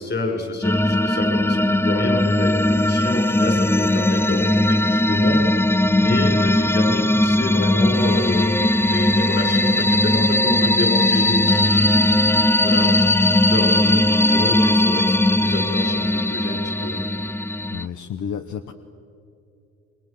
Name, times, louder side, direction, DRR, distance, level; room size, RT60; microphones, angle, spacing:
voice 1, 0.0-13.1 13.5-17.0, left 2 dB, 35° left, 2 dB, 6.8 m, -28 dB
sound 1, 0.6-17.9, left 1 dB, 10° left, 0.5 m, -18 dB
voice 2, 17.7-18.7, left 8 dB, 75° left, 9 dB, 1.1 m, -31 dB
28.5 x 23.0 x 7.4 m, 2.7 s
cardioid pair, 90°, 30 cm